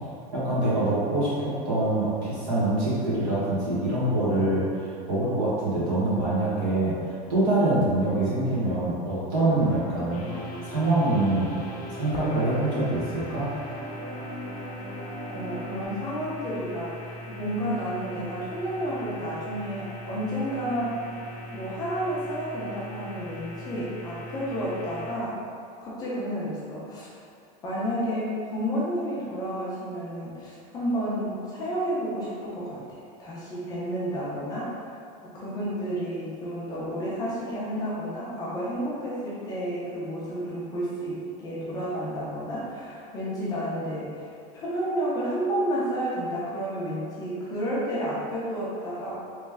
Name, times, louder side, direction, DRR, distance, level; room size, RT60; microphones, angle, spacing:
voice 1, 0.3-6.9 7.3-10.2 10.6-11.5 11.9-13.5, right 2 dB, 60° right, -8 dB, 1.4 m, -25 dB
sound 1, 9.3-15.8, equal, 40° right, 1.2 m, -39 dB
sound 2, 10.1-25.2, equal, 70° left, 0.5 m, -41 dB
voice 2, 15.3-21.0 21.5-25.4 25.8-27.1 27.6-34.9 35.2-49.1, equal, 20° left, -8 dB, 0.5 m, -31 dB
3.2 x 3.1 x 3.4 m, 2.3 s
supercardioid pair, 175°, 20 cm